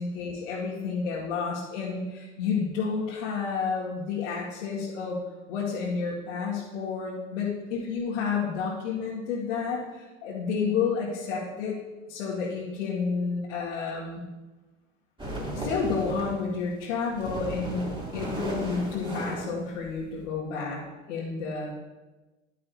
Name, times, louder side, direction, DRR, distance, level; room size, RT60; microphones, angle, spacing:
voice 1, 0.0-5.2 5.5-11.8 12.1-14.2 15.5-20.8 21.1-21.7, left 5 dB, 70° left, -7 dB, 2.2 m, -30 dB
sound 1, 15.2-16.4 16.9-20.2, right 1 dB, 10° right, 3.1 m, -35 dB
11.0 x 11.0 x 2.9 m, 1.2 s
hypercardioid pair, 95°, 40 cm